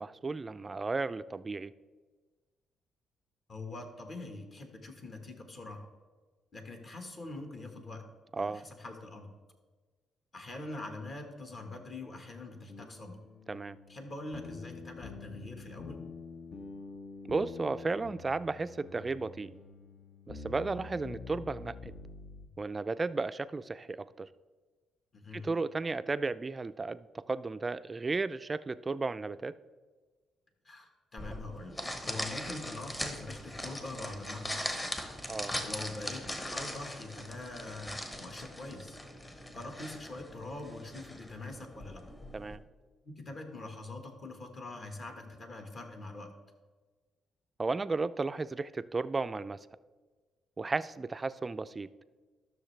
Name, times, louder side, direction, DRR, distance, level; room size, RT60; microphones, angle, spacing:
voice 1, 0.0-1.7 8.3-8.6 13.5-13.8 17.3-19.5 20.3-21.9 22.6-24.3 25.3-29.6 35.3-35.5 42.3-42.6 47.6-49.6 50.6-51.9, right 3 dB, 25° right, 14 dB, 0.3 m, -34 dB
voice 2, 3.5-5.8 6.5-8.0 8.4-9.3 10.3-13.2 13.9-16.0 25.1-25.5 30.6-34.9 35.6-36.2 36.5-39.0 39.5-42.0 43.0-46.3, left 2 dB, 40° left, 4 dB, 1.5 m, -44 dB
sound 1, 12.7-22.5, left 4 dB, 60° left, 0.9 m, -47 dB
sound 2, 31.2-42.6, left 1 dB, 20° left, 1.2 m, -40 dB
12.5 x 6.4 x 3.3 m, 1.4 s
cardioid pair, 90°, 0 cm